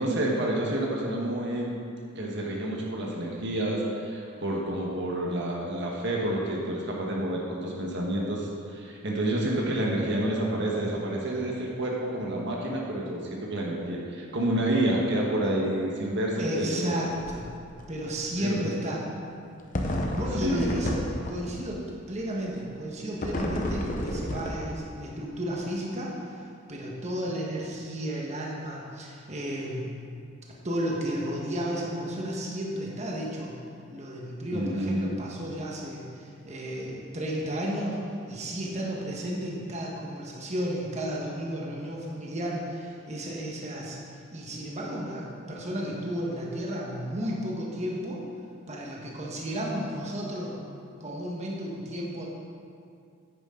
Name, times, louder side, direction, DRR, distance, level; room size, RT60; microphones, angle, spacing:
voice 1, 0.0-1.7 2.1-17.0 18.4-18.7 20.4-20.8 34.5-35.2, right 1 dB, 60° right, -2 dB, 1.3 m, -29 dB
voice 2, 16.4-17.5 17.9-19.0 19.8-26.4 26.7-30.0 30.6-33.6 33.9-38.0 38.3-44.0 44.3-48.2 48.7-50.6 51.0-52.3, equal, 35° right, -3 dB, 1.3 m, -33 dB
sound 1, 17.2-17.5 17.8-17.9 19.7-21.6 23.2-25.0, left 1 dB, 40° left, 0.9 m, -31 dB
10.0 x 9.4 x 3.8 m, 2.4 s
head